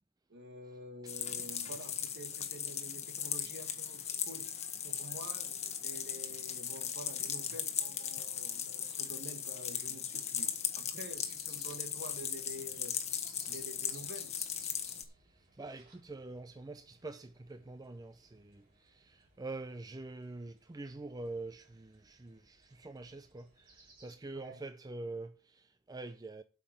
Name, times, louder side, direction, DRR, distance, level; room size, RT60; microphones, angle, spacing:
voice 1, 0.3-4.5 4.8-13.0 13.5-14.4 24.3-24.6, right 1 dB, 60° right, 1.8 m, -48 dB
sound 1, 1.1-15.0, left 8 dB, 35° left, 1.3 m, -38 dB
sound 2, 11.1-24.1, right 3 dB, 45° right, 4.5 m, -63 dB
voice 2, 15.6-26.4, right 2 dB, 20° right, 0.4 m, -45 dB
8.2 x 5.8 x 7.8 m
head